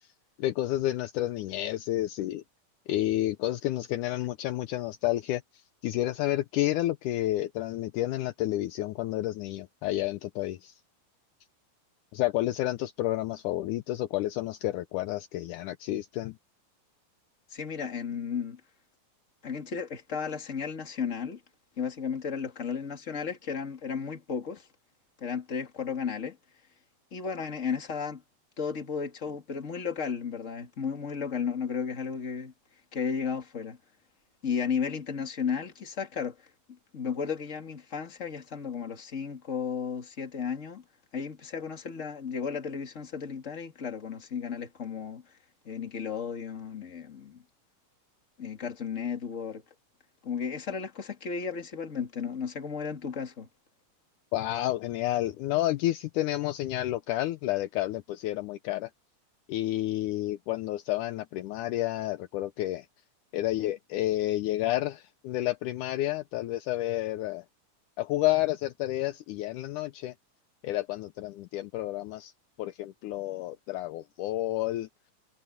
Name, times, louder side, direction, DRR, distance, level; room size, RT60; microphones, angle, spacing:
voice 1, 0.4-2.4 2.9-5.4 5.8-10.7 12.1-16.4 54.3-58.9 59.5-62.9 63.3-67.4 68.0-70.1 70.6-72.3 72.6-74.9, left 15 dB, 75° left, 2.1 m, -30 dB
voice 2, 17.5-18.6 19.4-21.4 21.8-24.7 25.2-26.4 27.1-28.2 28.6-32.5 32.9-33.8 34.4-36.4 36.9-40.8 41.1-45.2 45.6-47.4 48.4-49.6 50.2-53.5, left 6 dB, 25° left, 2.3 m, -34 dB
omnidirectional pair, 3.8 m